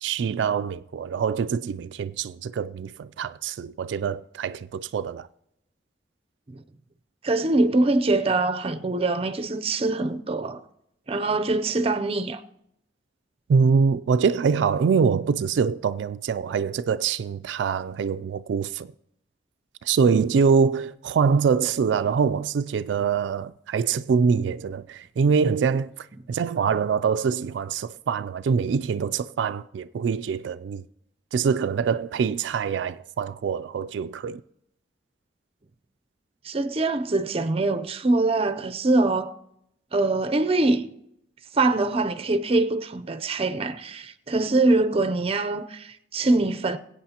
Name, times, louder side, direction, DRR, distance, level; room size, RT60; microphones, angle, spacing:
voice 1, 0.0-5.3 13.5-18.9 19.8-30.8 31.3-34.4, right 6 dB, 85° right, 0.3 m, -24 dB
voice 2, 7.2-10.6 11.1-12.4 36.4-39.3 39.9-40.8 41.5-46.8, right 2 dB, 35° right, 0.6 m, -23 dB
22.5 x 8.5 x 2.9 m
head